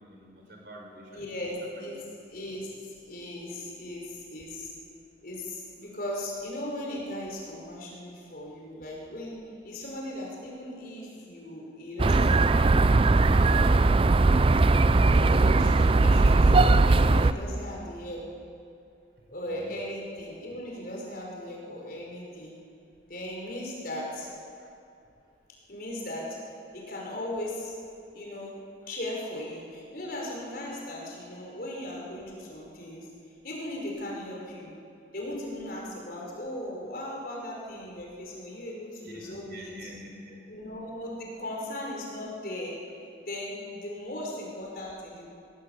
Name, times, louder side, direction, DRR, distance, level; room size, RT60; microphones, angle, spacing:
voice 1, 0.1-1.2 1.7-1.9 19.6-19.7 24.6-24.7 39.0-40.4, equal, 60° right, 0 dB, 4.8 m, -46 dB
voice 2, 1.1-1.9 2.3-4.7 5.2-9.4 9.6-12.5 13.2-13.7 15.1-18.2 19.3-22.5 23.1-24.3 25.7-26.4 26.7-27.7 28.1-28.6 28.9-33.1 33.4-34.7 35.1-39.9 40.5-42.8 43.3-45.3, left 1 dB, 50° left, -3 dB, 5.4 m, -37 dB
sound 1, 12.0-17.3, right 3 dB, 30° right, 0.4 m, -20 dB
21.0 x 16.5 x 8.2 m, 2.5 s
head